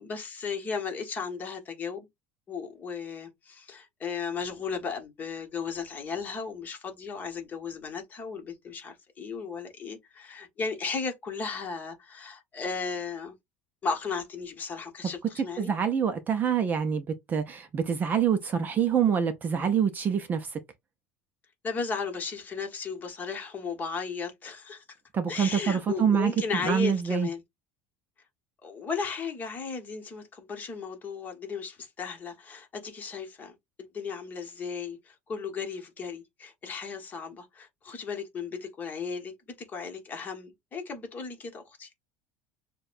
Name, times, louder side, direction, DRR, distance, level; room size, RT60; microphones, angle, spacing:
voice 1, 0.0-2.1 2.5-13.3 13.8-15.7 21.6-24.8 25.3-27.4 28.6-39.3 39.7-41.9, left 5 dB, 25° left, 1.2 m, -35 dB
voice 2, 15.4-20.6 25.1-26.3 26.6-27.3, right 7 dB, 25° right, 0.5 m, -26 dB
6.5 x 2.2 x 2.5 m
cardioid pair, 150°, 7 cm